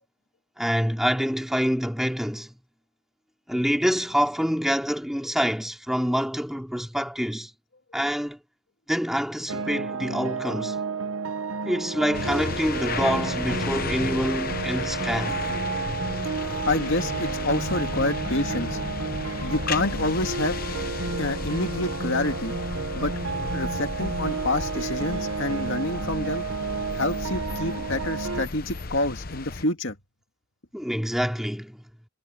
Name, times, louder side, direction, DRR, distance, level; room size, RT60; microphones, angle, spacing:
voice 1, 0.6-2.5 3.5-7.5 7.9-8.4 8.9-10.8 11.6-15.4 30.7-31.8, equal, ahead, 3.0 m, -26 dB
sound 1, 9.5-28.5, right 4 dB, 70° right, 1.4 m, -31 dB
sound 2, 12.1-29.6, left 3 dB, 45° left, 0.9 m, -34 dB
voice 2, 16.4-18.8 19.4-20.6 21.2-22.5 22.9-23.1 23.5-26.5 27.0-30.0, left 2 dB, 60° left, 2.2 m, -28 dB
head